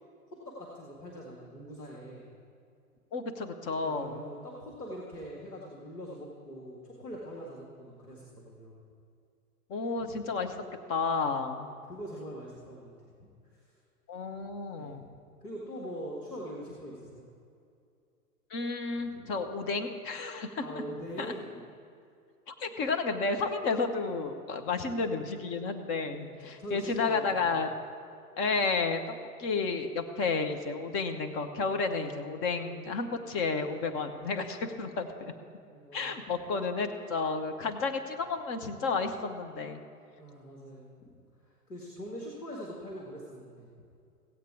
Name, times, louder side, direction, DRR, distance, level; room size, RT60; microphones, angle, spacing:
voice 1, 0.6-2.2 3.8-8.8 10.0-10.1 11.6-12.9 13.2-13.3 14.4-14.5 14.7-14.9 15.4-17.2 19.1-19.4 20.6-21.5 26.1-26.3 26.6-27.6 35.7-36.2 40.2-41.1 41.7-43.7, equal, 90° left, -3 dB, 2.0 m, -43 dB
voice 2, 3.1-4.2 9.7-10.6 10.9-11.7 14.1-15.1 18.5-20.6 21.2-21.3 22.5-27.7 28.4-35.3 35.9-39.8, left 4 dB, 30° left, 6 dB, 0.9 m, -32 dB
16.0 x 8.4 x 4.7 m, 2.4 s
figure-of-eight pair, 105°, 46 cm